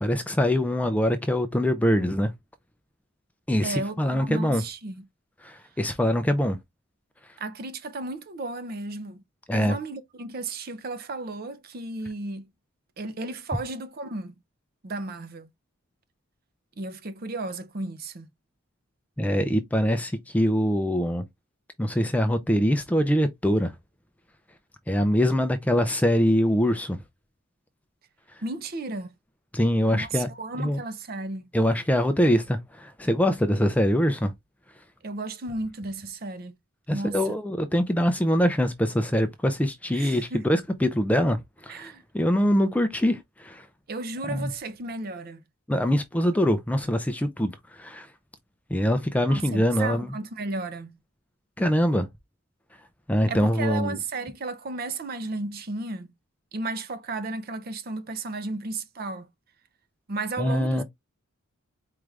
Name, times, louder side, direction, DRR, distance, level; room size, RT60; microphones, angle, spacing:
voice 1, 0.0-2.3 3.5-4.6 5.4-6.6 9.5-9.8 19.2-21.2 21.8-23.7 24.9-27.0 29.5-30.3 30.6-30.8 31.5-34.3 36.9-43.7 44.3-44.5 45.7-48.1 48.7-50.1 51.6-52.1 53.1-54.0 60.4-60.8, equal, 5° left, 0.4 m, -23 dB
voice 2, 3.6-5.0 7.4-9.2 9.5-12.5 13.0-14.3 14.8-15.5 16.8-18.3 28.4-29.1 29.9-31.5 35.0-36.5 36.9-37.3 39.9-40.4 41.7-42.0 43.9-45.4 49.3-51.0 53.3-56.1 56.5-59.3 60.1-60.8, right 2 dB, 40° right, 0.5 m, -34 dB
4.7 x 2.5 x 3.1 m
head